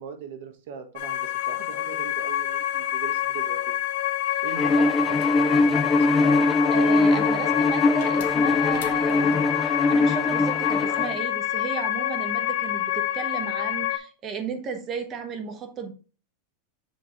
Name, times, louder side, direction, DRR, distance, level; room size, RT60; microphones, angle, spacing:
voice 1, 0.0-3.6 4.4-6.1, right 6 dB, 65° right, 7 dB, 1.5 m, -40 dB
sound 1, 1.0-14.0, left 13 dB, 55° left, 0.7 m, -27 dB
Bowed string instrument, 4.6-11.1, left 2 dB, 15° left, 0.3 m, -22 dB
voice 2, 4.8-5.1 6.7-15.9, right 5 dB, 25° right, 7 dB, 1.0 m, -34 dB
sound 2, 5.0-6.4 8.0-9.4, left 8 dB, 75° left, 1.0 m, -43 dB
7.2 x 3.3 x 4.2 m, 0.35 s
supercardioid pair, 155°, 0 cm